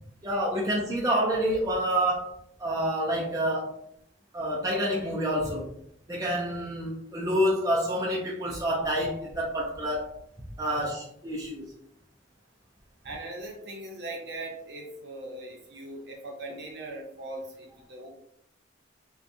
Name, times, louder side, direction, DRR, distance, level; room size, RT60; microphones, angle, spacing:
voice 1, 0.2-2.3 2.6-3.8 4.3-5.7 6.1-10.1 10.6-11.7, equal, 15° right, -4 dB, 0.3 m, -28 dB
voice 2, 13.0-18.1, right 2 dB, 55° right, 0 dB, 0.6 m, -40 dB
2.6 x 2.2 x 2.5 m, 0.72 s
head